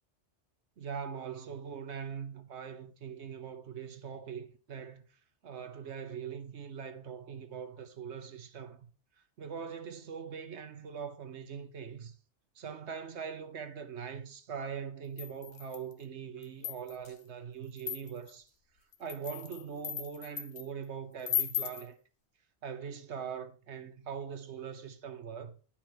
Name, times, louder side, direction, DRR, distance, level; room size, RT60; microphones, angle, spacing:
voice 1, 0.8-5.0 5.4-8.9 9.4-12.1 12.6-18.5 19.0-21.9 22.6-25.5, right 7 dB, 75° right, 1.2 m, -42 dB
sound 1, 15.2-15.9 16.4-17.1 17.8-18.3 18.9-20.7 21.2-21.9, left 9 dB, 65° left, 1.1 m, -36 dB
10.0 x 5.7 x 4.5 m
omnidirectional pair, 1.2 m